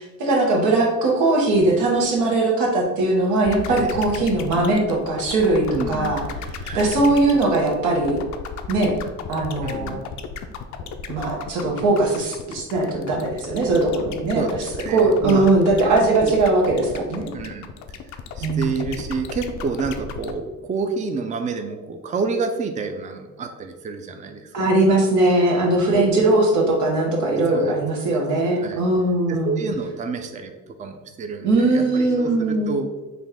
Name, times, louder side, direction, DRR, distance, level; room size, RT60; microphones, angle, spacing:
voice 1, 0.2-6.2 6.7-8.2 8.7-8.9 9.3-10.0 11.1-14.4 14.9-17.3 18.4-18.9 24.5-29.6 31.4-32.7, right 2 dB, 90° right, -1 dB, 1.0 m, -20 dB
sound 1, 3.4-20.4, left 6 dB, 70° left, 0.4 m, -34 dB
voice 2, 5.7-6.3 6.6-7.0 9.6-10.0 14.3-15.5 15.8-16.3 17.3-17.7 18.4-24.7 25.9-26.2 27.5-28.2 28.6-28.8 29.3-32.9, right 4 dB, 25° right, 6 dB, 0.4 m, -29 dB
4.0 x 2.3 x 3.5 m, 1.2 s
cardioid pair, 90°, 30 cm